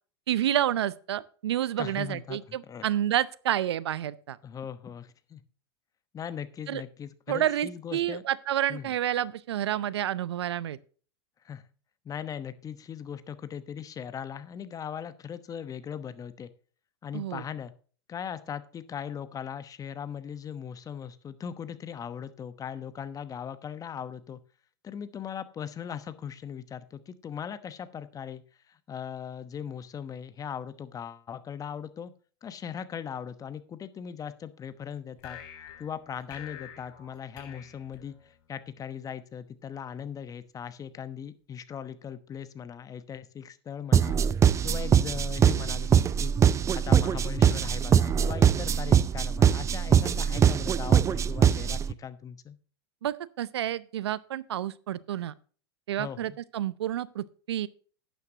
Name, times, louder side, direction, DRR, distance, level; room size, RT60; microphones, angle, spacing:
voice 1, 0.3-4.4 6.7-6.8 7.3-10.8 17.1-17.4 50.3-50.4 53.0-55.3 55.9-57.7, right 11 dB, 80° right, 0.6 m, -29 dB
voice 2, 1.8-2.9 4.4-5.4 6.1-8.2 8.7-8.9 11.4-11.6 12.0-16.5 17.0-17.7 18.1-24.4 24.8-32.1 32.4-35.4 35.8-44.2 44.6-46.3 46.7-52.6 56.0-56.4, left 8 dB, 25° left, 1.0 m, -39 dB
sound 1, 35.2-38.6, left 9 dB, 60° left, 3.8 m, -47 dB
sound 2, 43.9-51.9, right 8 dB, 20° right, 0.5 m, -22 dB
12.0 x 9.4 x 2.8 m
hypercardioid pair, 100°, 14 cm